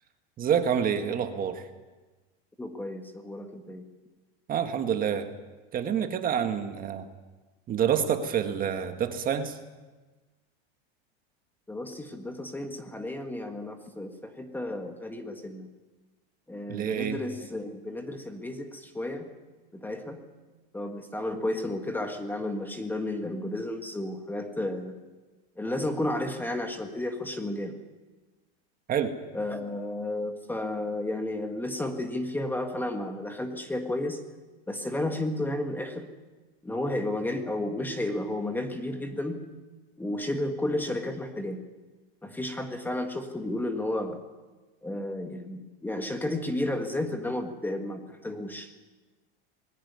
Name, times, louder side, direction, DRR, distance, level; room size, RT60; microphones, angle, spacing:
voice 1, 0.4-1.7 4.5-5.3 5.7-7.1 7.7-9.6 16.7-17.2 28.9-29.1, right 8 dB, 25° right, 7 dB, 1.7 m, -27 dB
voice 2, 2.6-3.8 11.7-15.7 16.5-19.3 19.7-20.2 20.7-24.9 25.6-27.8 29.3-34.2 34.7-36.1 36.6-39.4 40.0-41.6 42.2-44.2 44.8-48.7, left 1 dB, 5° left, 6 dB, 1.6 m, -32 dB
21.0 x 16.5 x 9.6 m, 1.2 s
supercardioid pair, 145°, 31 cm